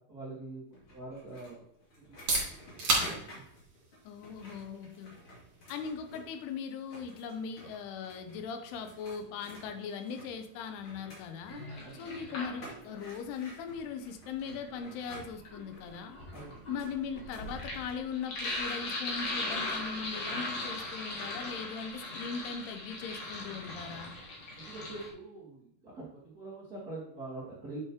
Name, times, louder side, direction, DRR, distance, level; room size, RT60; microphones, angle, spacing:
voice 1, 0.1-0.6 0.9-1.7 2.0-2.1 2.4-3.4 11.8-12.3 16.3-16.8 24.6-27.8, right 2 dB, 80° right, -6 dB, 0.8 m, -45 dB
sound 1, 0.7-6.5 6.8-18.9, equal, 35° left, 2.7 m, -52 dB
sound 2, 2.0-17.6, right 3 dB, 50° right, 3.6 m, -41 dB
voice 2, 4.1-5.1 5.7-11.6 11.9-16.2 16.7-24.1, left 6 dB, 85° left, 7 dB, 2.7 m, -39 dB
Sink (filling or washing), 11.5-13.0 14.2-25.1, left 2 dB, 55° left, 2.4 m, -39 dB
8.9 x 6.9 x 3.0 m, 0.72 s
omnidirectional pair, 4.8 m